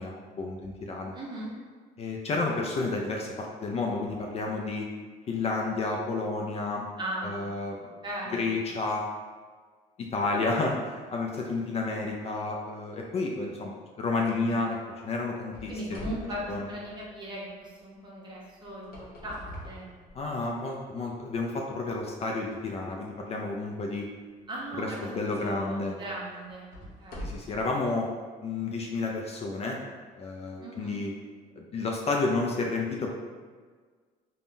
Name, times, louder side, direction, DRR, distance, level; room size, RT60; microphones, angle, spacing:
voice 1, 0.0-1.2 2.0-4.9 5.3-6.8 7.2-7.8 8.3-9.0 10.0-16.1 16.5-16.7 20.2-24.1 24.8-25.9 27.2-28.1 28.4-29.8 30.2-31.1 31.6-33.1, left 3 dB, 40° left, 0 dB, 0.3 m, -31 dB
voice 2, 1.1-1.5 7.0-7.6 8.0-8.5 15.7-19.9 24.5-27.7 30.6-31.0, right 1 dB, 25° right, -5 dB, 0.8 m, -38 dB
sound 1, 15.5-17.5 18.6-20.6 21.2-21.4 22.0-22.1 24.8-24.9 25.5-25.6 26.4-27.7, equal, 60° left, 0.8 m, -43 dB
3.5 x 2.2 x 2.5 m, 1.6 s
cardioid pair, 110°, 17 cm